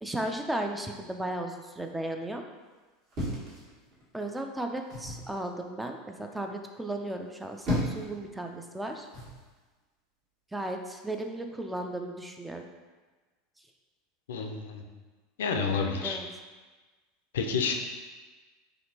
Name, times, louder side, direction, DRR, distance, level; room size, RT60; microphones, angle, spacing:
voice 1, 0.0-2.4 4.1-9.1 10.5-12.7 16.0-16.3, right 1 dB, 5° right, 4 dB, 0.4 m, -35 dB
sound 1, 3.1-4.2 4.9-5.3 7.3-8.2 9.1-9.4, left 1 dB, 45° right, 1.5 m, -33 dB
voice 2, 14.3-14.8 15.4-16.2 17.3-17.7, left 5 dB, 70° left, 4 dB, 0.4 m, -29 dB
4.2 x 2.9 x 2.8 m, 1.3 s
figure-of-eight pair, 80°, 0 cm